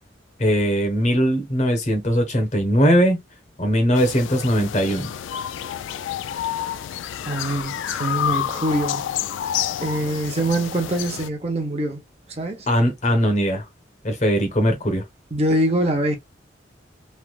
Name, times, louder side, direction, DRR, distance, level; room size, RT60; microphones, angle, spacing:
voice 1, 0.4-3.2 3.6-5.1 12.7-13.7 14.0-15.0, equal, 35° left, 1.0 m, -20 dB
sound 1, 3.9-11.3, left 10 dB, 80° left, 0.3 m, -29 dB
voice 2, 7.3-9.3 9.8-12.0 12.4-12.7 15.3-16.2, right 1 dB, 35° right, 0.7 m, -24 dB
3.3 x 2.4 x 2.4 m
head